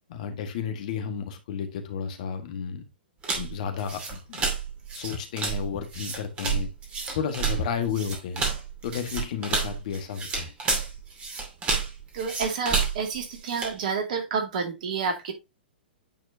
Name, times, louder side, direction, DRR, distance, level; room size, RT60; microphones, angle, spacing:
voice 1, 0.1-2.8 3.3-4.4 4.9-6.7 7.1-8.4 8.8-10.5, left 7 dB, 50° left, 1.6 m, -32 dB
sound 1, 3.2-13.8, right 5 dB, 20° right, 2.3 m, -30 dB
voice 2, 12.1-15.3, right 5 dB, 50° right, 2.2 m, -29 dB
9.2 x 4.4 x 2.7 m
figure-of-eight pair, 110°, 5 cm